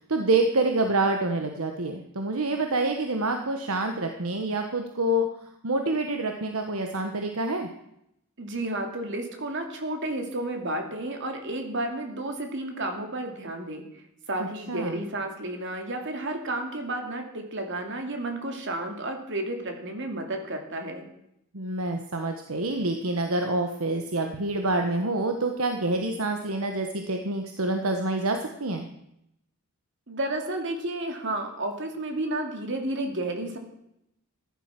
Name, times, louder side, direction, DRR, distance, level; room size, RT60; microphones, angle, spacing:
voice 1, 0.1-5.3 5.6-7.7 14.7-15.0 21.5-28.9, right 2 dB, 70° right, 5 dB, 1.3 m, -27 dB
voice 2, 8.4-13.8 14.3-21.1 30.1-33.6, right 1 dB, 55° right, 4 dB, 2.6 m, -32 dB
15.0 x 11.0 x 5.9 m, 0.80 s
head